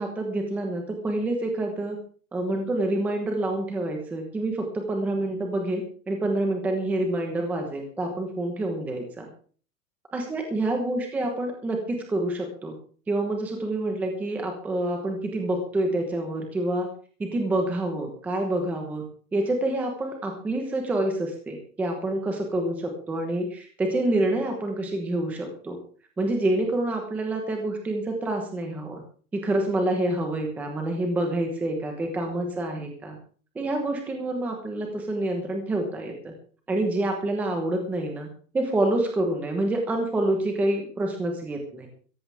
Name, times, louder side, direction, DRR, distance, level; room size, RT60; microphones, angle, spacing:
voice 1, 0.0-2.0 2.3-9.3 10.1-12.7 13.1-16.9 17.2-19.0 19.3-25.8 26.2-29.0 29.3-33.2 33.5-36.3 36.7-38.3 38.5-41.9, right 1 dB, 5° right, 3 dB, 1.1 m, -27 dB
16.5 x 15.0 x 3.5 m, 0.42 s
hypercardioid pair, 180°, 47 cm